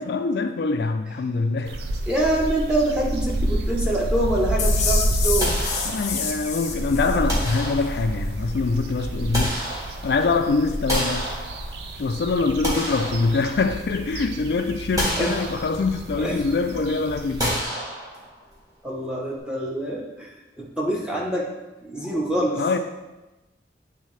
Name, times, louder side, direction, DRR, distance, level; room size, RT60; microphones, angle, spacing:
voice 1, 0.1-1.8 5.8-9.6 10.0-11.3 12.0-17.6 22.5-22.8, left 4 dB, 70° left, 0.4 m, -24 dB
sound 1, 1.6-17.6, right 1 dB, 70° right, 0.5 m, -29 dB
voice 2, 2.1-5.5 15.2-15.3 16.2-16.3 18.8-21.5 21.8-22.6, right 1 dB, 5° right, 0.9 m, -25 dB
sound 2, 4.6-7.6, left 5 dB, 40° left, 0.7 m, -28 dB
sound 3, 5.4-6.4 7.3-8.3 9.0-10.3 10.9-12.0 12.4-13.9 14.3-14.4 15.0-16.0 17.4-18.5, equal, 20° right, 1.7 m, -30 dB
8.2 x 3.6 x 3.2 m
head